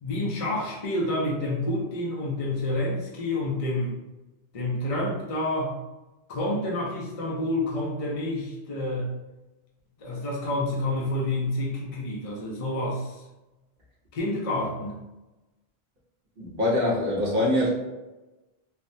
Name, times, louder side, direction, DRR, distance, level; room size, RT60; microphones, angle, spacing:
voice 1, 0.0-3.9 4.5-5.8 6.3-9.1 10.0-13.2 14.1-15.0, left 1 dB, 50° left, -3 dB, 0.5 m, -28 dB
voice 2, 16.4-17.7, left 1 dB, 60° right, -5 dB, 1.0 m, -24 dB
3.3 x 2.1 x 2.6 m, 1.1 s
omnidirectional pair, 1.1 m